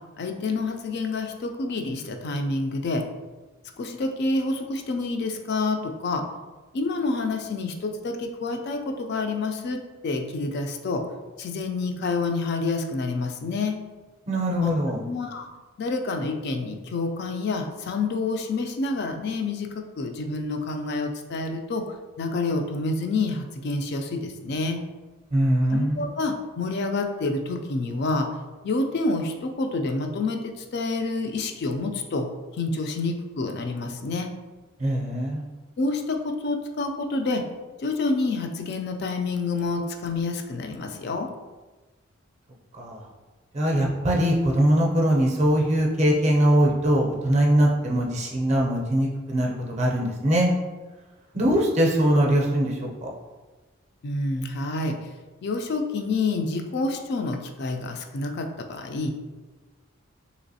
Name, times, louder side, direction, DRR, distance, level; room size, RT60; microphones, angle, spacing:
voice 1, 0.2-3.1 3.8-6.3 6.7-11.0 11.4-13.8 14.5-14.7 15.0-15.5 15.8-21.9 22.2-24.8 25.7-28.3 28.6-32.3 32.5-34.3 35.8-37.4 37.8-41.3 54.0-55.1 55.4-59.2, left 3 dB, 50° left, 5 dB, 0.3 m, -28 dB
voice 2, 14.3-15.0 25.3-26.0 34.8-35.4 42.7-43.1 43.5-50.5 51.3-53.1, right 1 dB, 30° right, -1 dB, 0.5 m, -22 dB
3.3 x 3.0 x 2.7 m, 1.2 s
head